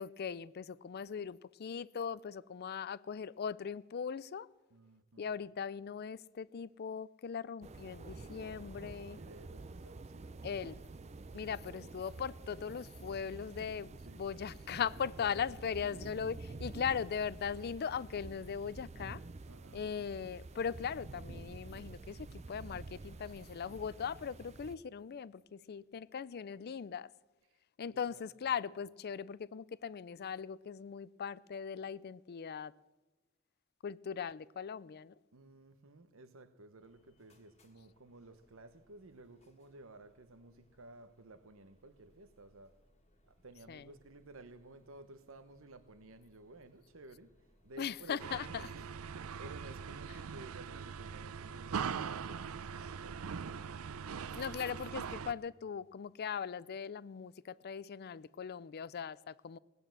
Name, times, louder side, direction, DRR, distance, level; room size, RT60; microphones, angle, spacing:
voice 1, 0.0-4.5 5.2-9.2 10.4-10.8 11.3-19.2 19.7-27.1 27.8-32.7 33.8-35.1 43.7-43.9 47.8-48.7 50.1-50.2 54.4-59.6, left 7 dB, 50° left, 0.4 m, -39 dB
voice 2, 4.7-5.3 9.2-10.4 11.4-11.5 13.5-13.7 14.0-14.2 19.5-19.8 28.1-28.2 35.3-42.8 43.4-47.3 47.6-48.9 49.4-53.4, right 2 dB, 65° right, 0.9 m, -55 dB
sound 1, 7.6-24.8, right 3 dB, 30° right, 0.5 m, -49 dB
sound 2, 36.8-54.1, equal, 30° left, 1.7 m, -69 dB
sound 3, 48.2-55.3, right 6 dB, 90° right, 0.5 m, -41 dB
18.0 x 9.4 x 7.5 m
head